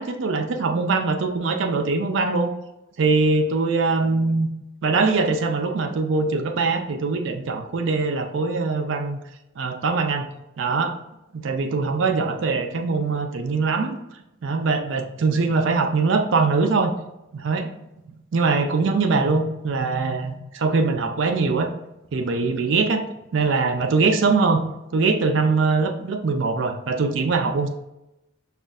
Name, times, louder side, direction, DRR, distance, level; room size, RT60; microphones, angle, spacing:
voice 1, 0.0-2.5 3.0-4.5 4.8-9.2 9.6-10.3 10.6-11.0 11.3-14.0 14.4-16.9 17.3-17.7 18.3-21.7 22.1-23.0 23.3-24.6 24.9-27.7, right 4 dB, 60° right, 5 dB, 0.4 m, -22 dB
5.1 x 2.4 x 2.3 m, 0.91 s
head